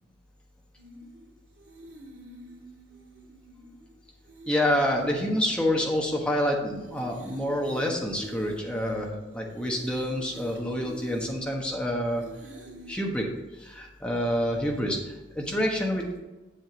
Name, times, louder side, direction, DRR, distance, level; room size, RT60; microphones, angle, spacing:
sound 1, 0.8-12.9, equal, 80° right, 2.2 m, -46 dB
voice 1, 4.5-12.2 12.9-13.3 13.6-16.1, equal, 5° left, -1 dB, 1.2 m, -27 dB
7.7 x 7.6 x 4.0 m, 1.1 s
head